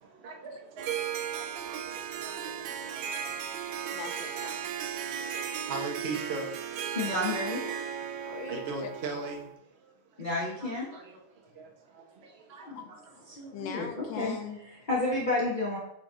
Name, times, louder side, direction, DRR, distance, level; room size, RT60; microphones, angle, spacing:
voice 1, 0.0-4.0 4.8-7.0 7.8-7.9 8.2-10.3 10.9-12.8 13.3-13.6, right 3 dB, 40° right, 2 dB, 1.0 m, -42 dB
Harp, 0.8-9.5, right 8 dB, 80° right, 1.2 m, -36 dB
voice 2, 2.4-3.1 3.9-4.7 7.0-7.7 8.2-8.9 12.7-13.2 13.5-14.6, left 7 dB, 90° left, 5 dB, 1.4 m, -42 dB
voice 3, 6.9-7.6 10.2-10.9 12.6-12.8 13.3-14.3 14.9-15.8, left 2 dB, 30° left, -5 dB, 1.1 m, -30 dB
8.4 x 3.5 x 3.8 m, 0.77 s
omnidirectional pair, 2.0 m